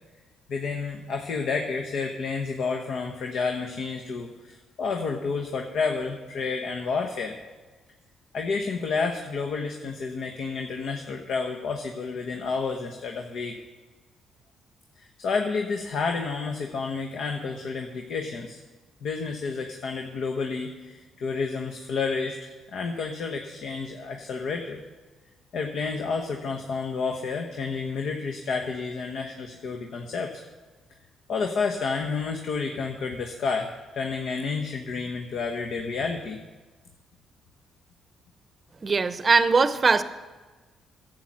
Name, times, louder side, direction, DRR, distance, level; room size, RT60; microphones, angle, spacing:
voice 1, 0.5-7.4 8.3-13.5 15.0-18.6 19.0-24.8 25.5-30.4 31.3-36.4, left 4 dB, 70° left, 3 dB, 1.0 m, -30 dB
voice 2, 38.8-40.0, right 4 dB, 30° right, 13 dB, 0.7 m, -20 dB
11.0 x 8.0 x 7.4 m, 1.3 s
cardioid pair, 90°, 0 cm